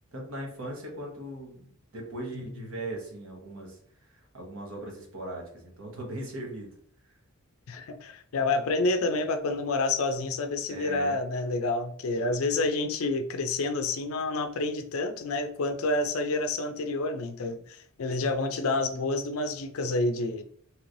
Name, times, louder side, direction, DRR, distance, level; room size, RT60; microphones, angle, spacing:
voice 1, 0.1-6.7 10.7-11.2, right 1 dB, 65° right, 0 dB, 1.1 m, -39 dB
voice 2, 2.3-2.7 7.7-20.4, left 2 dB, 65° left, 8 dB, 0.4 m, -29 dB
3.1 x 2.9 x 2.6 m, 0.63 s
head